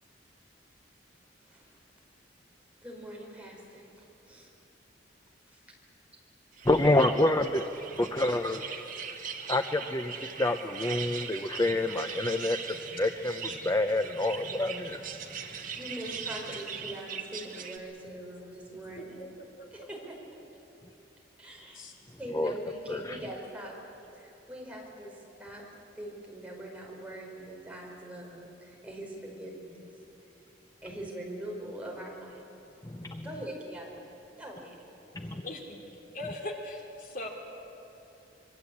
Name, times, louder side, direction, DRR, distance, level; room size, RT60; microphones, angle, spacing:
voice 1, 1.4-1.8 2.8-4.5 5.5-5.6 6.8-6.9 15.7-19.2 19.7-20.2 21.4-21.8 22.2-23.8 24.1-25.6 25.9-29.9 30.8-32.5 33.2-34.0 34.4-34.8 35.2-35.4, right 1 dB, 5° right, -2 dB, 5.0 m, -42 dB
sound 1, 6.6-17.8, right 6 dB, 45° right, 1.9 m, -40 dB
voice 2, 6.7-7.6 8.0-8.6 9.5-10.1 10.4-15.0 22.3-22.5 22.9-23.0 32.8-33.2 35.2-35.4, left 2 dB, 20° left, 7 dB, 0.7 m, -27 dB
voice 3, 19.0-19.9 21.7-21.9 35.4-35.8 36.1-37.3, left 2 dB, 45° left, 1 dB, 3.2 m, -40 dB
25.5 x 23.0 x 8.6 m, 2.9 s
head